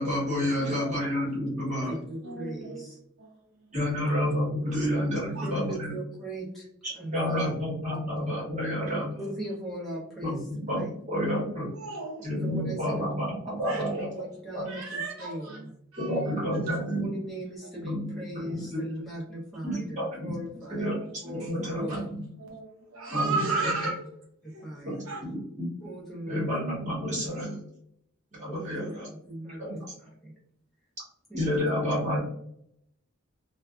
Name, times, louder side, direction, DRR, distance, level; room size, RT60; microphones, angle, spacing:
voice 1, 0.0-1.9 3.7-5.9 6.8-9.2 10.2-11.7 12.2-14.1 14.5-14.7 16.0-17.1 17.8-18.1 18.4-18.8 19.6-20.0 20.7-21.0 21.3-22.3 23.1-23.4 23.6-23.7 24.8-25.0 25.6-25.7 26.3-27.7 28.3-29.1 29.5-29.8 31.3-32.2, equal, 35° right, -5 dB, 1.1 m, -29 dB
voice 2, 0.5-1.0 1.6-1.7 2.2-2.8 3.2-3.4 3.7-4.1 4.6-4.9 5.3-5.5 11.7-12.4 13.6-13.8 14.7-15.6 15.9-17.0 20.5-21.0 21.2-22.0 22.4-24.0 24.5-24.6 25.1-25.2, right 3 dB, 80° right, -1 dB, 0.8 m, -35 dB
voice 3, 1.9-3.0 5.4-6.7 6.9-7.5 9.2-10.9 12.3-13.1 14.1-15.7 16.9-20.9 21.2-22.0 23.2-23.7 24.4-25.0 25.8-26.5 28.4-28.9 29.3-30.3 31.3-31.7, right 1 dB, ahead, -6 dB, 0.7 m, -38 dB
2.6 x 2.3 x 2.3 m, 0.71 s
head